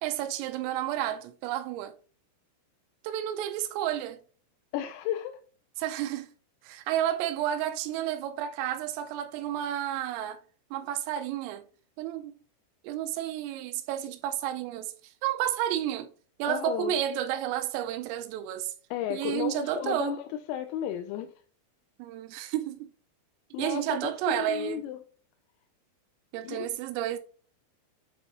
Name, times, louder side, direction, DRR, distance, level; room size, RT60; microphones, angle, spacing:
voice 1, 0.0-1.9 3.0-4.2 5.8-6.3 6.6-10.4 10.7-11.6 12.0-12.3 12.8-14.9 15.2-16.1 16.4-18.7 19.1-20.1 22.0-22.9 23.6-24.8 26.3-27.2, right 11 dB, 85° right, 3.3 m, -31 dB
voice 2, 4.7-5.4 16.5-16.9 18.9-20.2 20.5-21.3 23.5-25.0 26.4-26.7, left 11 dB, 90° left, 3.3 m, -33 dB
9.0 x 4.1 x 2.9 m
omnidirectional pair, 5.8 m